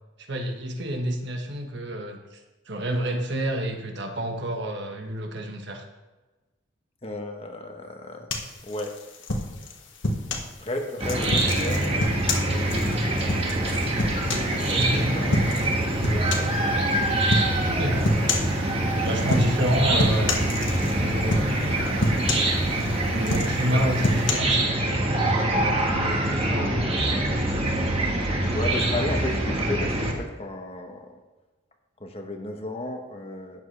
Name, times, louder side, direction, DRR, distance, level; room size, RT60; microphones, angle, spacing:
voice 1, 0.2-2.4 2.7-5.8 14.7-15.1 17.7-18.0 19.0-20.5 20.9-21.9 23.1-24.9, equal, 55° right, 3 dB, 1.3 m, -29 dB
voice 2, 7.0-8.4 8.6-9.0 10.6-13.0 13.3-13.7 14.7-15.3 16.0-16.6 25.5-27.5 28.5-31.2 32.0-33.6, left 1 dB, 30° left, 3 dB, 1.1 m, -34 dB
sound 1, 8.3-10.5 11.0-14.8 15.3-15.7 16.0-16.6 17.3-17.5 18.0-18.6 19.2-19.7 20.0-21.0 21.3-21.7 22.0-22.9 23.2-24.3, left 1 dB, 65° left, 1.5 m, -27 dB
Chicken rooster / Cricket, 11.0-30.1, right 1 dB, 30° right, 1.5 m, -24 dB
sound 2, 17.9-23.2, right 1 dB, 80° right, 1.5 m, -40 dB
12.0 x 9.0 x 3.4 m, 1.2 s
head